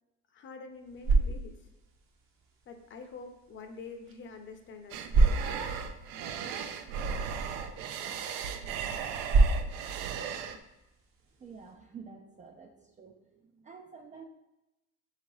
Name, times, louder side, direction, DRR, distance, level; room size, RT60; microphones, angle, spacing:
voice 1, 0.3-1.6 2.7-5.4, left 4 dB, 35° left, 5 dB, 0.7 m, -46 dB
sound 1, 0.7-11.7, right 3 dB, 40° right, 0.8 m, -31 dB
sound 2, 4.9-10.6, right 7 dB, 70° right, 0.5 m, -36 dB
voice 2, 11.4-14.2, right 5 dB, 25° right, 3 dB, 0.3 m, -49 dB
3.7 x 2.9 x 4.6 m, 0.96 s
cardioid pair, 120°, 34 cm